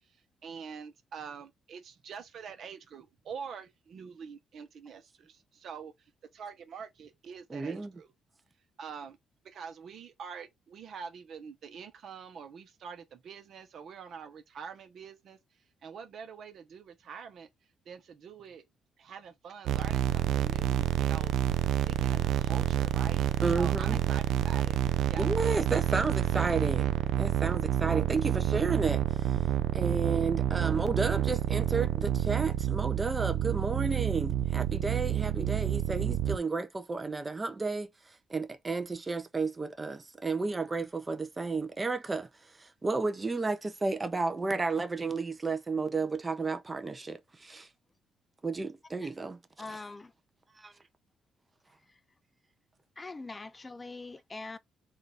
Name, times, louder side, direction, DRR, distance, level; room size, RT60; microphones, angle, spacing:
voice 1, 0.4-8.1 8.8-9.2 9.4-15.4 15.8-17.5 17.8-18.6 19.0-25.3, right 6 dB, 65° right, 0.9 m, -45 dB
voice 2, 7.5-7.9 23.4-24.0 25.2-29.4 29.7-37.9 38.3-42.3 42.6-47.7 48.4-49.9 50.6-50.7, right 3 dB, 25° right, 0.7 m, -32 dB
sound 1, 19.6-36.4, right 11 dB, 80° right, 0.4 m, -28 dB
voice 3, 49.6-50.1 53.0-54.6, left 3 dB, 25° left, 0.4 m, -42 dB
3.7 x 2.5 x 4.0 m
cardioid pair, 90°, 0 cm